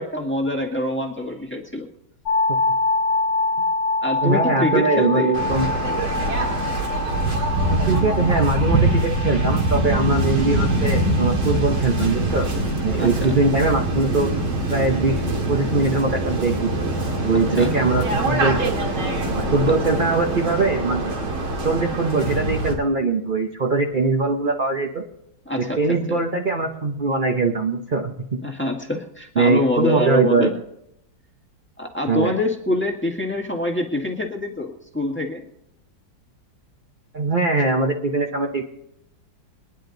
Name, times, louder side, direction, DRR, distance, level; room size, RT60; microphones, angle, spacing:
voice 1, 0.0-1.8 4.0-5.4 13.0-13.4 17.3-17.7 19.7-19.8 25.4-26.2 28.4-30.5 31.8-35.4, left 1 dB, 5° left, 1 dB, 1.4 m, -25 dB
sound 1, 2.3-12.0, left 3 dB, 60° left, 1.2 m, -26 dB
voice 2, 4.2-5.7 7.7-12.5 12.8-14.3 14.7-15.2 15.5-16.8 17.2-18.9 19.4-21.1 21.6-25.0 25.6-28.1 29.4-30.5 32.1-32.4 37.1-38.6, right 3 dB, 35° right, 2 dB, 0.8 m, -21 dB
Waves surf, 5.3-22.7, right 1 dB, 85° right, 3.4 m, -23 dB
22.0 x 10.0 x 4.0 m, 0.79 s
omnidirectional pair, 2.2 m